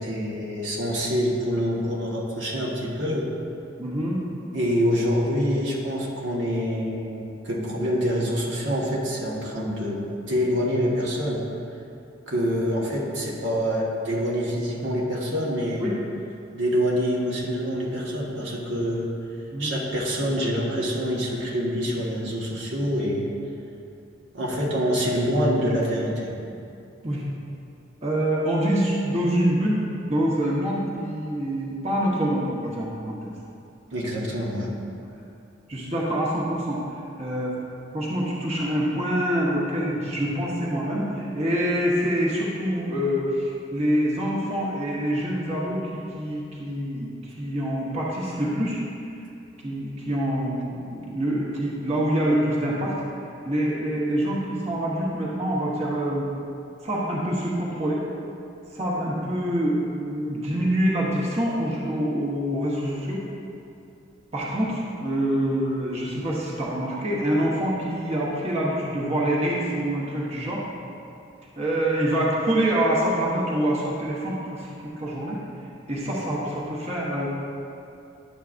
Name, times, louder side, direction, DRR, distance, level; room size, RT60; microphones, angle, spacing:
voice 1, 0.0-3.3 4.5-11.4 12.3-15.9 16.5-19.1 19.6-23.3 24.3-26.3 33.9-34.7, equal, 75° right, -4 dB, 1.3 m, -26 dB
voice 2, 3.8-4.2 15.8-16.0 19.5-19.7 27.0-27.2 28.0-33.3 35.1-35.2 35.7-36.8 37.2-37.5 37.9-48.8 49.6-52.9 53.4-56.3 56.8-58.0 58.7-63.2 64.3-70.6 71.6-75.4 75.9-77.3, right 1 dB, 35° right, -6 dB, 1.0 m, -26 dB
10.5 x 7.4 x 2.5 m, 2.6 s
head